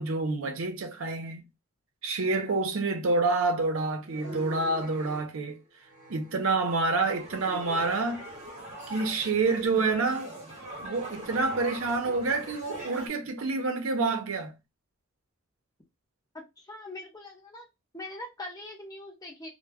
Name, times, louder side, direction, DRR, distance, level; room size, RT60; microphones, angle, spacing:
voice 1, 0.0-1.4 2.0-5.6 6.1-8.2 8.9-10.3 10.8-14.5, right 3 dB, 70° right, 0.6 m, -28 dB
sound 1, 4.0-5.3 5.9-13.1, right 1 dB, 35° right, 1.0 m, -42 dB
voice 2, 16.6-17.7 17.9-19.5, left 1 dB, 15° left, 0.7 m, -42 dB
2.1 x 2.1 x 3.3 m
head